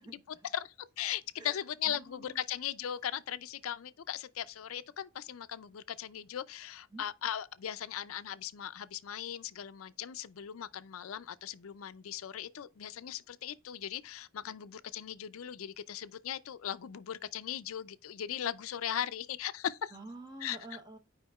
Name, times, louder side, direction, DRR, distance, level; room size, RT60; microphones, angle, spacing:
voice 1, 0.0-0.5 1.4-2.4 6.9-7.0 19.9-21.0, right 2 dB, 20° right, 0.8 m, -49 dB
voice 2, 0.5-19.9 20.4-20.6, left 10 dB, 90° left, 0.4 m, -38 dB
8.3 x 5.0 x 2.3 m
head